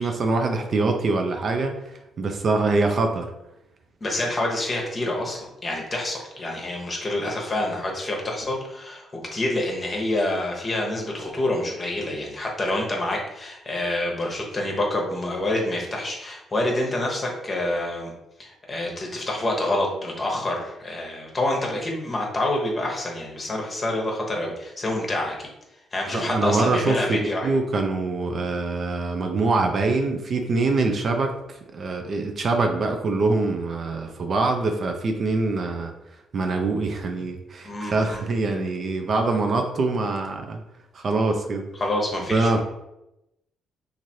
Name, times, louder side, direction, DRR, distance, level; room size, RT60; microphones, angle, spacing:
voice 1, 0.0-1.7 2.2-3.3 26.1-31.3 31.7-35.9 36.3-40.6 40.9-41.7 42.2-42.6, right 3 dB, 50° right, 4 dB, 0.4 m, -24 dB
voice 2, 4.0-18.1 18.4-25.5 25.9-27.5 37.6-38.2 41.8-42.6, left 1 dB, 30° left, -1 dB, 0.9 m, -27 dB
3.1 x 2.5 x 2.7 m, 0.88 s
cardioid pair, 90°, 0 cm